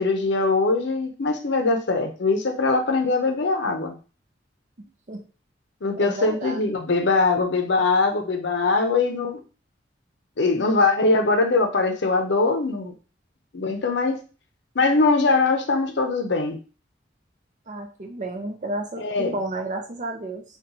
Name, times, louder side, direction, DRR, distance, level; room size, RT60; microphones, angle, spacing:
voice 1, 0.0-3.9 5.8-9.4 10.4-12.9 13.5-14.2 14.8-16.6 19.0-19.4, left 3 dB, 65° left, 4 dB, 0.6 m, -22 dB
voice 2, 4.8-5.2 6.0-6.7 17.7-20.4, right 1 dB, 40° right, 3 dB, 0.6 m, -32 dB
2.9 x 2.3 x 3.8 m, 0.35 s
head